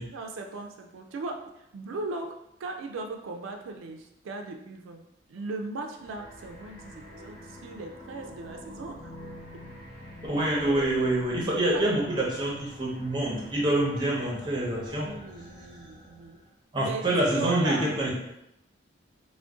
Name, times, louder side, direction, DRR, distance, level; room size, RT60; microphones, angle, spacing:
voice 1, 0.0-2.3 2.6-9.1 11.7-11.9 15.0-16.4 16.7-17.9, right 3 dB, 90° right, 3 dB, 0.3 m, -38 dB
sound 1, 5.9-16.5, equal, 30° left, 0.9 m, -46 dB
voice 2, 10.2-15.1 16.7-18.1, right 1 dB, 20° right, -3 dB, 0.6 m, -26 dB
2.5 x 2.1 x 3.5 m, 0.82 s
head